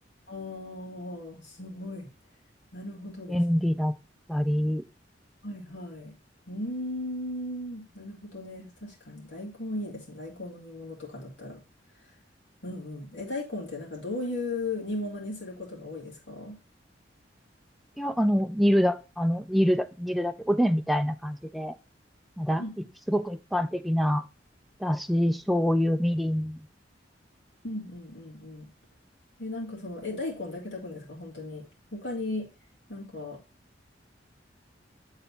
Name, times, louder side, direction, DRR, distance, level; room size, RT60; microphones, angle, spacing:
voice 1, 0.3-2.1 2.7-3.4 5.4-6.1 6.5-11.6 12.6-16.6 22.6-22.7 27.6-28.7 29.4-31.7 31.9-32.5 32.9-33.4, left 2 dB, 70° left, -2 dB, 2.5 m, -36 dB
voice 2, 3.3-3.9 4.3-4.8 18.0-21.7 22.4-22.6 23.1-24.2 24.8-26.6, equal, ahead, 8 dB, 0.3 m, -25 dB
9.1 x 4.0 x 4.2 m, 0.30 s
head